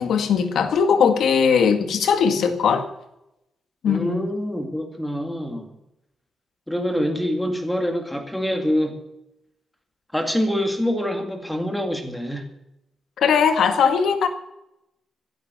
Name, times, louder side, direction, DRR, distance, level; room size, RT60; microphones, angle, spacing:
voice 1, 0.0-2.9 3.8-4.2 13.2-14.3, left 6 dB, 70° left, 8 dB, 2.0 m, -19 dB
voice 2, 3.8-5.7 6.7-9.0 10.1-12.4, equal, 5° left, 5 dB, 2.1 m, -25 dB
15.5 x 12.0 x 6.8 m, 0.85 s
wide cardioid pair, 170°, 0 cm